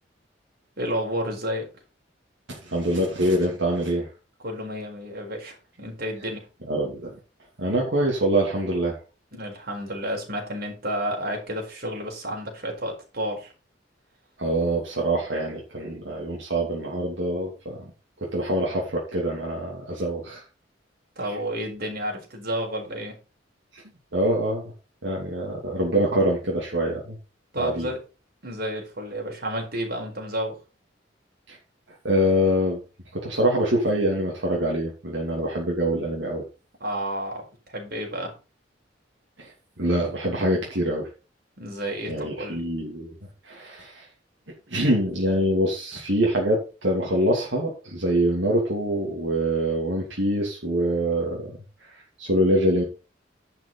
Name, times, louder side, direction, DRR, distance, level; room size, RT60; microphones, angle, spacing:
voice 1, 0.8-1.7 4.4-6.5 9.3-13.5 21.2-23.2 27.5-28.0 28.4-30.6 36.8-38.3 41.6-42.6, equal, 55° right, 1 dB, 4.6 m, -31 dB
voice 2, 2.5-4.1 6.7-7.1 7.6-9.0 14.4-17.9 18.3-20.4 23.7-23.8 24.1-24.6 25.0-27.2 27.6-27.9 31.5-31.6 32.0-32.8 33.1-36.4 39.4-39.5 39.8-41.1 42.1-43.1 43.4-44.1 44.7-51.5 51.8-52.8, right 1 dB, 75° right, -2 dB, 2.8 m, -25 dB
11.0 x 6.0 x 5.5 m, 0.33 s
head